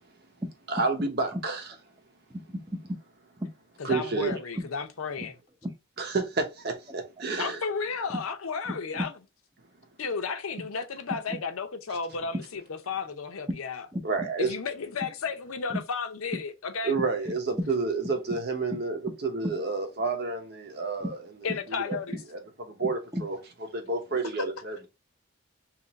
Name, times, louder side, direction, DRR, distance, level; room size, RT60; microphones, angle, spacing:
voice 1, 0.7-1.6 3.8-4.3 6.0-7.6 14.0-14.5 16.8-21.2 21.4-22.0 22.3-22.4 22.6-23.4 23.7-24.9, right 3 dB, 50° right, 0.8 m, -30 dB
voice 2, 2.3-3.0 3.4-3.5 5.2-5.3 5.6-5.7 8.1-8.2 8.9-9.0 11.3-11.4 13.9-14.0 21.0-21.1 23.1-23.2, equal, 15° right, 0.7 m, -33 dB
voice 3, 3.8-5.3 7.4-9.1 10.0-12.6 12.9-13.9 14.4-16.9 21.4-22.2, left 5 dB, 85° left, 0.6 m, -33 dB
2.9 x 2.5 x 3.9 m
head